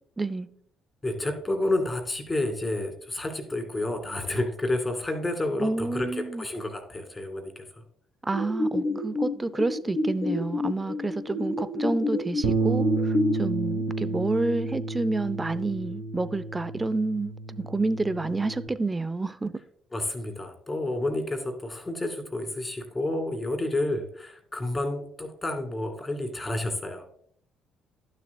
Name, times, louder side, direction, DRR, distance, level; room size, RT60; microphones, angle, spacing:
voice 1, 0.2-0.5 5.6-6.4 8.2-19.6, right 2 dB, 25° right, 0.5 m, -29 dB
voice 2, 1.0-7.8 19.9-27.1, left 1 dB, 25° left, 2.3 m, -30 dB
sound 1, 8.3-13.3, left 2 dB, 45° left, 1.0 m, -29 dB
Bass guitar, 12.4-18.7, right 3 dB, 75° right, 0.8 m, -30 dB
12.0 x 6.7 x 2.3 m
hypercardioid pair, 55°, 0 cm